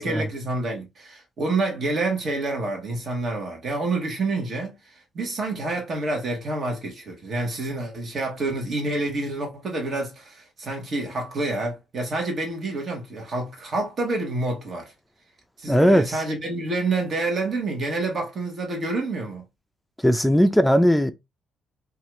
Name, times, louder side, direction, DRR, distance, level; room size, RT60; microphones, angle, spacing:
voice 1, 0.0-14.9 15.6-19.4, right 2 dB, 50° right, 1.2 m, -28 dB
voice 2, 15.7-16.2 20.0-21.1, equal, 5° left, 0.4 m, -18 dB
2.7 x 2.4 x 3.1 m
cardioid pair, 90°, 0 cm